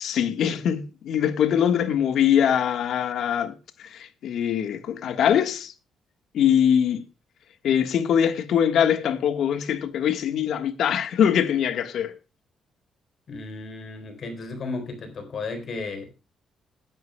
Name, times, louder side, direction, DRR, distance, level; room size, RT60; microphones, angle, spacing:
voice 1, 0.0-5.7 6.3-7.0 7.6-12.1, left 9 dB, 70° left, 1.4 m, -23 dB
voice 2, 13.3-16.1, left 3 dB, 50° left, 3.8 m, -34 dB
20.5 x 10.5 x 2.2 m
cardioid pair, 90°, 0 cm